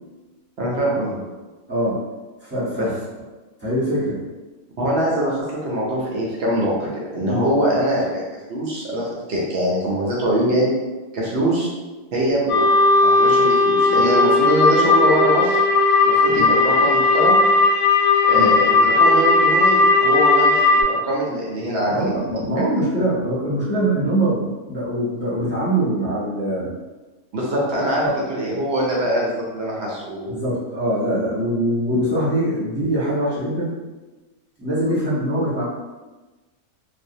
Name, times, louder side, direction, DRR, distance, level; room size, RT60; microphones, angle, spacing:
voice 1, 0.6-1.2 2.8-2.9 4.8-8.2 8.5-10.7 11.1-11.7 12.1-12.6 13.0-15.6 16.0-17.4 18.3-22.0 27.3-30.3, equal, 70° right, -4 dB, 0.6 m, -23 dB
voice 2, 2.4-2.9 3.6-4.2 7.3-7.5 16.4-16.5 18.3-18.5 21.9-26.7 28.2-28.3 30.3-33.8 34.6-35.7, right 1 dB, 10° right, -11 dB, 0.6 m, -23 dB
sound 1, 12.5-20.8, left 3 dB, 85° left, 1.1 m, -16 dB
2.5 x 2.0 x 2.6 m, 1.2 s
omnidirectional pair, 1.6 m